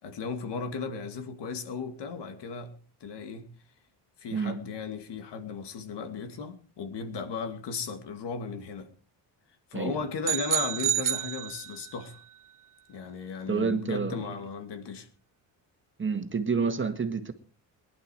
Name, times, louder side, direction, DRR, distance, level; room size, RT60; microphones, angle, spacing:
voice 1, 0.0-2.7 3.0-3.5 4.2-8.9 9.7-12.2 12.9-15.1, left 5 dB, 70° left, 2.6 m, -36 dB
sound 1, 10.2-12.1, right 10 dB, 50° right, 0.7 m, -29 dB
voice 2, 13.5-14.2 16.0-17.3, right 5 dB, 30° right, 1.9 m, -29 dB
22.5 x 11.5 x 4.6 m
cardioid pair, 110°, 42 cm